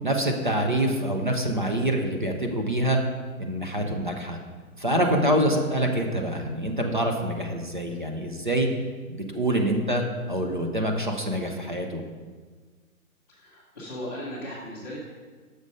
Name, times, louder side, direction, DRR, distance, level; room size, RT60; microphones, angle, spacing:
voice 1, 0.0-3.0 3.4-4.4 4.8-8.7 9.1-10.0 10.3-12.0, right 1 dB, 35° right, 3 dB, 0.5 m, -25 dB
voice 2, 13.3-15.0, left 1 dB, 10° left, -14 dB, 0.7 m, -37 dB
6.4 x 4.8 x 5.3 m, 1.5 s
hypercardioid pair, 170°, 43 cm